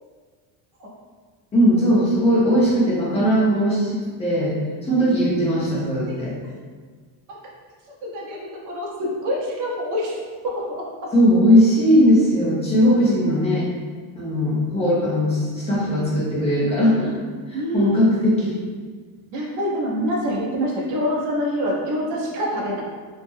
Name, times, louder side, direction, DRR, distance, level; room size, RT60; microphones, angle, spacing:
voice 1, 1.5-4.5 4.8-6.3 11.1-13.7 14.1-17.2 17.5-18.6, equal, 15° left, -7 dB, 0.3 m, -19 dB
voice 2, 8.0-10.8 17.5-18.0 19.3-22.8, equal, 40° right, -2 dB, 0.6 m, -26 dB
2.9 x 2.0 x 3.5 m, 1.6 s
cardioid pair, 170°, 48 cm